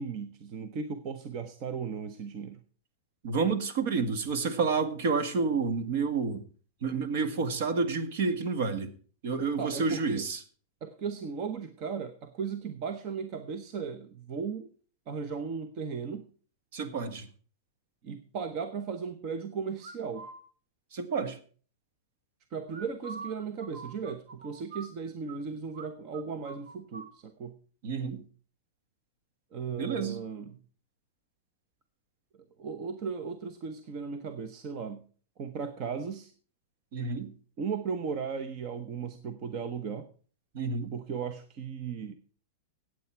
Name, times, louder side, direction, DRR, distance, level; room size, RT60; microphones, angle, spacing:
voice 1, 0.0-2.6 9.6-10.3 10.8-14.7 15.1-16.2 18.0-20.3 22.5-27.6 29.5-30.6 32.6-35.0 35.4-36.3 37.6-40.1 40.9-42.1, right 6 dB, 35° right, 8 dB, 0.9 m, -36 dB
voice 2, 3.2-6.4 6.8-8.9 9.2-10.4 16.7-17.3 20.9-21.4 27.8-28.2 29.7-30.2 36.9-37.3 40.5-40.9, right 4 dB, 55° right, 10 dB, 1.7 m, -29 dB
sound 1, 19.8-20.4 22.7-25.4 25.7-25.9 26.1-27.1, right 4 dB, 90° right, 1.8 m, -44 dB
15.0 x 8.6 x 4.5 m, 0.42 s
supercardioid pair, 160°, 0 cm